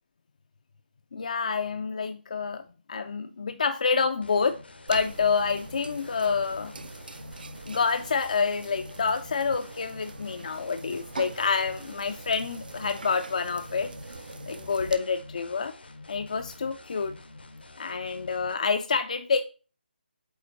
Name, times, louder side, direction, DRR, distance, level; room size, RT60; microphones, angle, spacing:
voice 1, 1.1-2.6 2.9-4.6 4.9-6.7 7.7-13.9 14.5-15.7 16.1-17.1 17.8-19.4, left 5 dB, 45° left, 8 dB, 0.4 m, -28 dB
sound 1, 4.2-18.5, left 2 dB, 70° left, 0.8 m, -47 dB
sound 2, 4.9-15.0, right 3 dB, 55° right, 0.6 m, -43 dB
8.3 x 4.1 x 2.9 m, 0.34 s
figure-of-eight pair, 150°, 6 cm